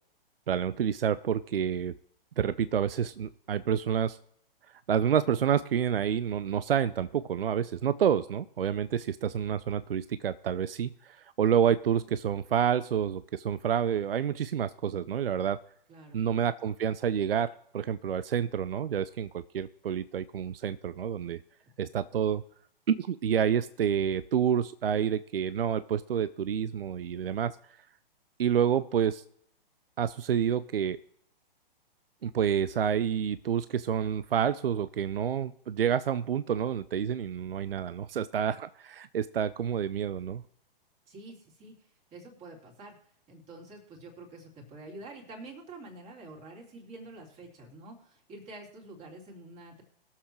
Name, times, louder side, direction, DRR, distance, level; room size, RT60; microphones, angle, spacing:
voice 1, 0.5-1.9 2.4-4.2 4.9-15.6 16.1-21.4 21.8-22.4 22.9-27.6 28.4-29.2 30.0-31.0 32.2-40.4, right 8 dB, 75° right, 15 dB, 0.6 m, -28 dB
voice 2, 15.9-16.2 21.8-21.9 41.1-43.0 43.3-49.8, right 2 dB, 25° right, 0 dB, 3.5 m, -47 dB
21.5 x 7.4 x 3.2 m, 0.67 s
figure-of-eight pair, 125°, 29 cm